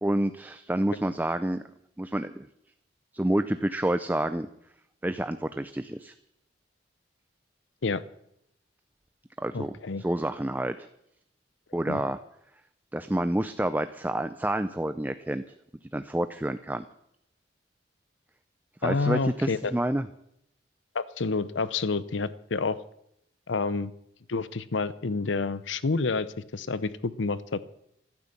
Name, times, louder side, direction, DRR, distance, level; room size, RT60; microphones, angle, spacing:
voice 1, 0.0-1.6 2.0-2.5 3.1-4.5 5.0-6.1 9.4-10.9 11.7-12.2 12.9-15.4 15.9-16.8 18.8-20.1, right 1 dB, 10° right, 11 dB, 0.5 m, -28 dB
voice 2, 9.5-10.0 11.9-12.0 18.8-19.6 20.9-22.8 23.5-23.9 24.3-27.7, left 4 dB, 85° left, 16 dB, 0.7 m, -29 dB
15.0 x 12.0 x 7.3 m, 0.77 s
head